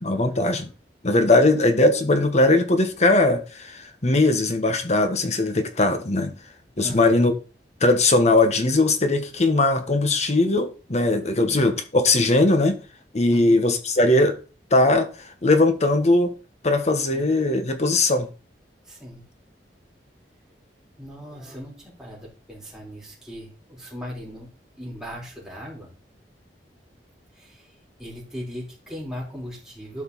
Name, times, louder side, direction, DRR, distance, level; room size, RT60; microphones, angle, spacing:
voice 1, 0.0-0.7 1.0-6.3 6.8-7.3 7.8-12.8 13.1-14.4 14.7-16.3 16.6-18.3, left 2 dB, 40° left, 1.2 m, -20 dB
voice 2, 6.8-7.2 13.3-13.6 17.1-17.3 18.9-19.2 21.0-24.5 24.8-25.9 27.3-30.0, equal, 5° right, 4.1 m, -38 dB
12.5 x 5.4 x 4.1 m
head